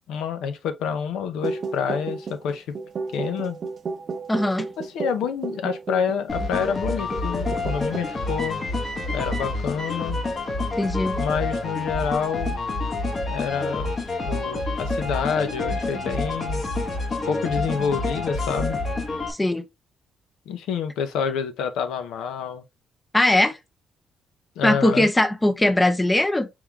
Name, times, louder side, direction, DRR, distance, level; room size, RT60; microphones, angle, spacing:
voice 1, 0.1-2.7 3.1-3.6 4.8-8.6 9.1-10.2 11.2-12.6 13.3-13.9 14.2-16.6 17.3-18.8 20.5-22.6 24.6-25.1, left 7 dB, 85° left, 0.6 m, -28 dB
sound 1, 1.4-6.9 7.1-7.3 7.5-8.0, right 4 dB, 50° right, 0.5 m, -32 dB
voice 2, 4.3-4.7 10.8-11.2 19.3-19.7 23.1-23.6 24.6-26.5, left 1 dB, 15° left, 0.5 m, -20 dB
sound 2, 6.3-19.3, left 2 dB, 45° left, 1.2 m, -28 dB
4.6 x 3.6 x 2.3 m
cardioid pair, 90°, 0 cm